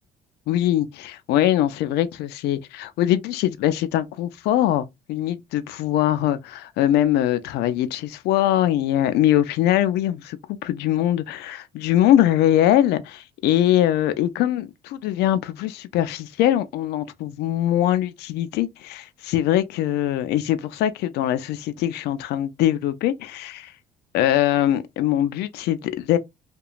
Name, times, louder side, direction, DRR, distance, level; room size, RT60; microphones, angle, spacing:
voice 1, 0.5-23.7 24.1-26.2, left 12 dB, 75° left, 0.4 m, -22 dB
2.8 x 2.2 x 2.3 m
cardioid pair, 110°, 17 cm